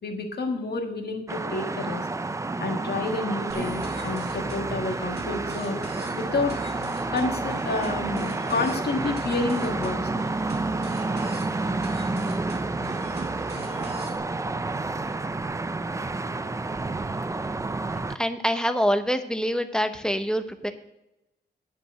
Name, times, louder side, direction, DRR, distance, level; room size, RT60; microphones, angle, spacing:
voice 1, 0.0-2.1 2.6-5.8 6.1-6.5 7.1-10.1, left 3 dB, 65° left, 3 dB, 1.8 m, -29 dB
sound 1, 1.3-18.2, right 3 dB, 15° right, 0.4 m, -30 dB
sound 2, 3.5-14.2, right 2 dB, 65° right, 2.0 m, -39 dB
voice 2, 18.1-20.7, equal, 5° left, 8 dB, 0.9 m, -25 dB
10.0 x 5.2 x 8.1 m, 0.89 s
wide cardioid pair, 120°, 18 cm